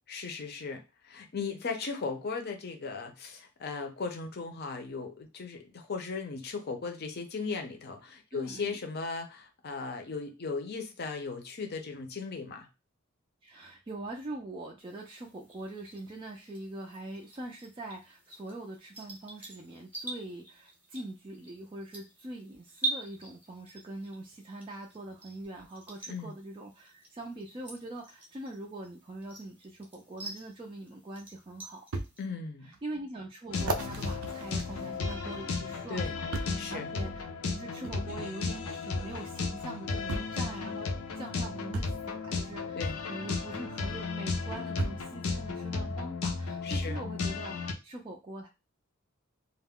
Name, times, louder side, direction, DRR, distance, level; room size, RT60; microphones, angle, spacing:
voice 1, 0.1-12.7 26.1-26.3 32.2-32.7 35.9-36.1 36.5-36.9 42.7-43.0 46.6-47.0, left 4 dB, 50° left, 5 dB, 0.6 m, -37 dB
voice 2, 8.3-8.8 13.4-31.9 32.6-48.5, right 2 dB, 25° right, -1 dB, 0.3 m, -43 dB
sound 1, 14.8-32.3, right 2 dB, 10° right, 0.7 m, -45 dB
sound 2, 31.9-32.1 32.7-32.8 33.5-35.4 36.3-36.7 37.8-38.0 39.3-39.4 40.1-40.4 41.7-42.0 43.6-43.7 44.8-45.1 45.9-46.0, right 2 dB, 80° right, 0.5 m, -36 dB
sound 3, 33.5-47.7, left 4 dB, 90° left, 0.5 m, -34 dB
2.3 x 2.1 x 3.5 m, 0.27 s
head